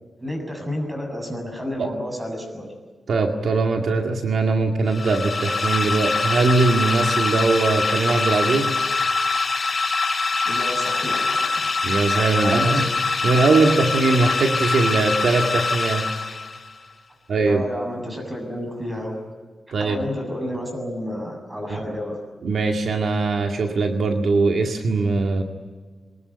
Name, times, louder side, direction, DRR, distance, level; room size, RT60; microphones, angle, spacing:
voice 1, 0.2-2.7 9.5-9.7 10.3-11.7 12.4-12.8 17.5-19.2 19.8-22.2, equal, 20° right, 3 dB, 7.4 m, -31 dB
voice 2, 3.1-8.7 11.8-12.9 13.2-16.1 17.3-17.6 19.7-20.0 22.4-25.4, right 3 dB, 75° right, 3 dB, 2.1 m, -21 dB
sound 1, 4.9-16.7, left 3 dB, 35° left, 3.9 m, -24 dB
23.5 x 20.5 x 10.0 m, 1.5 s
wide cardioid pair, 125°, 0 cm